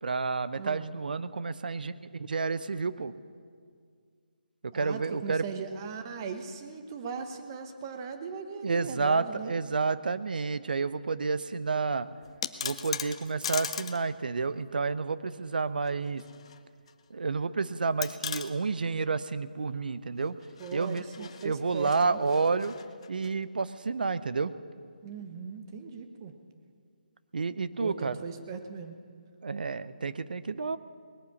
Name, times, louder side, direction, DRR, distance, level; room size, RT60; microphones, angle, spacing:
voice 1, 0.0-3.1 4.6-5.4 8.6-12.1 12.6-16.2 17.1-20.4 20.7-22.8 23.1-24.5 27.3-28.2 29.4-30.8, right 4 dB, 70° right, 15 dB, 0.6 m, -30 dB
voice 2, 0.6-0.9 4.7-9.6 20.6-22.2 25.0-26.3 27.8-29.0, right 5 dB, 25° right, 7 dB, 1.0 m, -39 dB
sound 1, 12.2-14.0 14.3-14.4 15.9-16.6 16.9-17.0 18.0-18.5 20.4-23.3, left 8 dB, 40° left, 0.6 m, -38 dB
19.5 x 9.4 x 7.0 m, 2.1 s
figure-of-eight pair, 160°, 5 cm